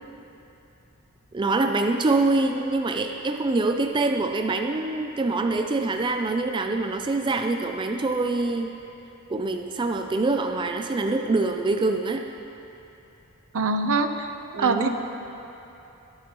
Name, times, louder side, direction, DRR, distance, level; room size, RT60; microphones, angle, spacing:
voice 1, 1.3-8.7 9.3-12.2 14.6-14.9, right 3 dB, 20° right, 5 dB, 0.4 m, -25 dB
voice 2, 13.5-14.9, right 3 dB, 65° right, 7 dB, 0.7 m, -24 dB
20.5 x 9.7 x 3.0 m, 3.0 s
head